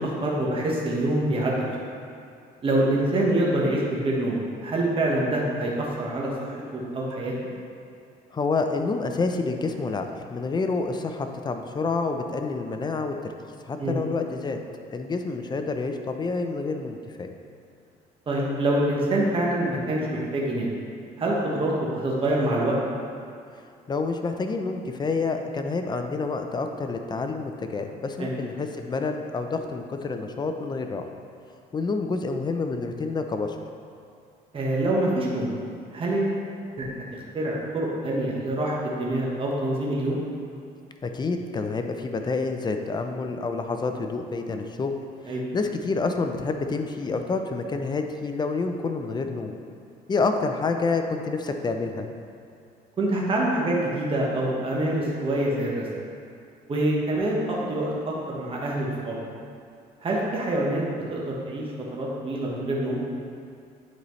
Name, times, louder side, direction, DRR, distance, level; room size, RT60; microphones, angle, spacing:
voice 1, 0.0-1.6 2.6-7.3 13.8-14.0 18.3-20.7 21.2-22.8 28.2-28.3 34.5-35.5 35.9-36.4 36.8-36.9 37.3-40.2 45.2-45.4 53.0-55.9 56.7-59.2 60.0-60.8 61.1-63.0, right 1 dB, 30° right, -4 dB, 1.2 m, -25 dB
voice 2, 8.3-13.3 13.7-14.6 14.9-17.3 23.9-31.0 31.7-33.6 41.0-44.9 45.2-49.6 50.1-52.1, left 4 dB, 25° left, 5 dB, 0.5 m, -28 dB
9.4 x 4.2 x 3.2 m, 2.4 s
cardioid pair, 110°, 17 cm